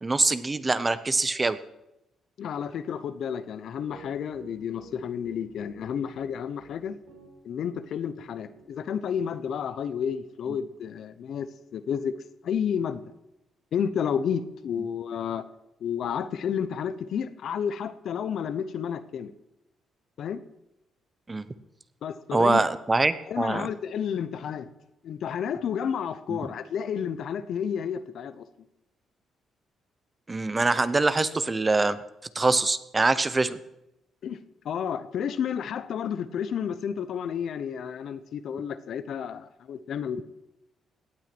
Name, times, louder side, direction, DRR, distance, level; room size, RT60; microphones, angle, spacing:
voice 1, 0.0-1.6 21.3-21.4 22.3-23.7 26.3-26.4 30.3-32.0 32.3-33.6, right 3 dB, 25° right, 14 dB, 0.8 m, -24 dB
voice 2, 2.4-7.0 7.4-12.1 12.4-13.0 13.7-15.4 15.8-19.3 20.2-20.4 22.0-22.7 23.3-24.7 25.0-28.4 34.2-34.4 34.6-40.2, left 8 dB, 65° left, 13 dB, 0.8 m, -31 dB
Piano, 3.9-10.3, right 6 dB, 85° right, 4.4 m, -52 dB
17.5 x 9.1 x 6.1 m, 0.91 s
cardioid pair, 90°, 0 cm